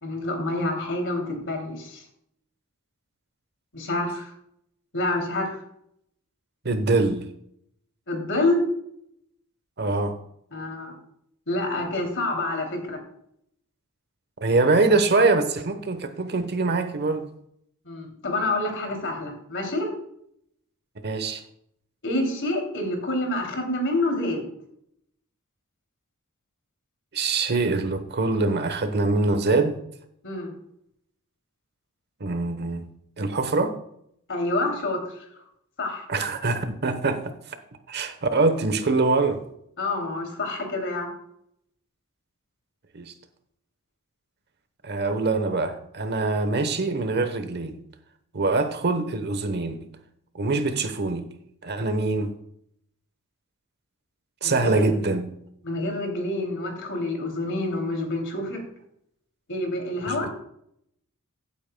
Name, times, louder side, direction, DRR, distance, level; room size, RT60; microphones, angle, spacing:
voice 1, 0.0-2.0 3.7-4.3 4.9-5.6 8.1-8.6 10.5-11.0 11.5-13.0 17.8-19.9 22.0-24.5 30.2-30.5 34.3-35.0 35.8-36.1 39.8-41.1 54.4-54.9 55.6-58.6 59.5-60.3, left 2 dB, 60° left, 2 dB, 2.8 m, -27 dB
voice 2, 6.6-7.3 9.8-10.1 14.4-17.2 21.0-21.4 27.1-29.8 32.2-32.9 33.2-33.7 36.1-37.3 37.9-39.4 42.9-43.1 44.8-47.8 48.3-49.8 50.3-51.3 51.6-52.3 54.4-55.3 60.0-60.2, right 3 dB, 50° right, 9 dB, 1.0 m, -24 dB
15.5 x 8.6 x 2.2 m, 0.72 s
head